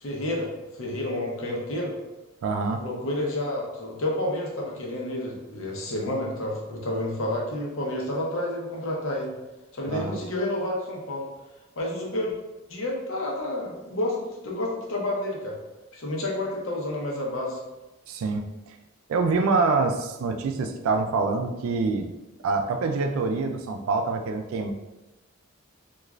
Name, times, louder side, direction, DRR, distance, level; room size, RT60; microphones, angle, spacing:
voice 1, 0.0-1.9 2.8-9.3 9.7-11.3 11.8-12.3 12.7-15.6 15.9-17.6, left 1 dB, 75° left, -2 dB, 0.7 m, -30 dB
voice 2, 2.4-2.8 9.9-10.2 18.1-18.7 19.1-22.1 22.4-24.7, right 4 dB, 90° right, 7 dB, 0.3 m, -26 dB
3.0 x 2.3 x 2.4 m, 1.0 s
head